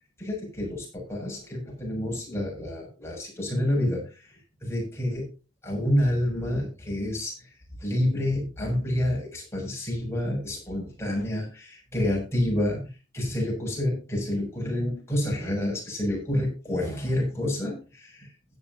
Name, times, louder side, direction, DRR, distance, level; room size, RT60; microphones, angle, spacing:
voice 1, 0.2-4.0 4.6-5.3 5.6-7.3 7.8-12.8 13.1-18.3, left 1 dB, 15° left, -2 dB, 6.9 m, -28 dB
16.5 x 10.5 x 2.8 m, 0.31 s
head